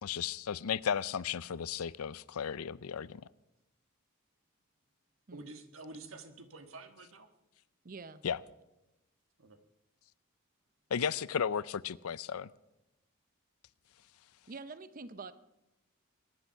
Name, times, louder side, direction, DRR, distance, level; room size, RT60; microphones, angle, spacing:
voice 1, 0.0-3.2 8.2-8.4 10.9-12.5, left 7 dB, 85° left, 0.5 m, -34 dB
voice 2, 5.3-7.3 9.4-9.6, right 2 dB, 70° right, 1.5 m, -49 dB
voice 3, 7.8-8.2 14.5-15.3, right 4 dB, 40° right, 0.6 m, -46 dB
21.5 x 10.5 x 5.7 m
head